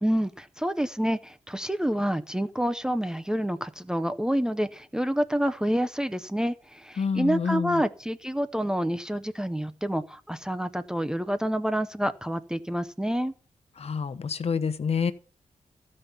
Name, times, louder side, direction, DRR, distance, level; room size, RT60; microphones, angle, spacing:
voice 1, 0.0-13.3, equal, 5° right, 0.6 m, -28 dB
voice 2, 7.0-7.8 13.8-15.1, left 6 dB, 55° left, 0.8 m, -27 dB
14.0 x 5.4 x 7.0 m
wide cardioid pair, 125°, 13 cm